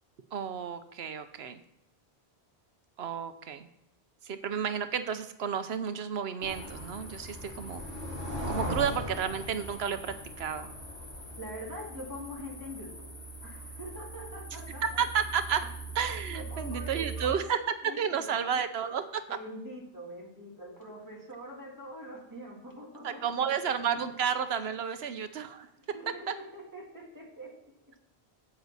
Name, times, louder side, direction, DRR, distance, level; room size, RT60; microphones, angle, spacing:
voice 1, 0.3-1.6 3.0-3.7 4.2-7.8 8.5-10.7 14.8-15.7 15.9-17.6 17.8-19.4 23.0-25.7 26.3-26.4, right 7 dB, 75° right, 10 dB, 1.0 m, -32 dB
sound 1, 6.4-17.3, right 1 dB, 85° left, 3.4 m, -40 dB
voice 2, 11.4-13.1 13.4-15.0 16.3-17.5 17.8-18.5 19.3-23.4 24.0-24.1 25.9-27.7, equal, 20° right, -2 dB, 2.1 m, -44 dB
9.4 x 8.0 x 4.1 m, 0.84 s
omnidirectional pair, 1.1 m